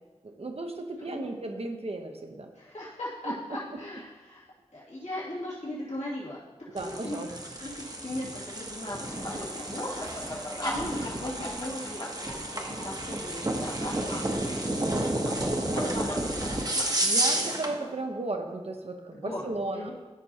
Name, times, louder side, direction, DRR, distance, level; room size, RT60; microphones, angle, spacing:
voice 1, 0.2-2.5 3.2-3.3 6.7-7.3 17.0-19.9, right 2 dB, 60° right, 4 dB, 0.9 m, -35 dB
voice 2, 2.5-4.4 4.7-6.4 6.8-7.2 7.6-14.6 15.4-16.4 16.7-17.1 17.4-17.5 19.1-19.5 19.7-19.9, left 1 dB, 85° left, -9 dB, 2.4 m, -39 dB
sound 1, 6.8-17.7, right 1 dB, 35° right, 0.9 m, -31 dB
sound 2, 8.8-18.0, left 1 dB, 40° left, 1.2 m, -41 dB
13.5 x 5.4 x 2.8 m, 1.2 s
wide cardioid pair, 70°, 11 cm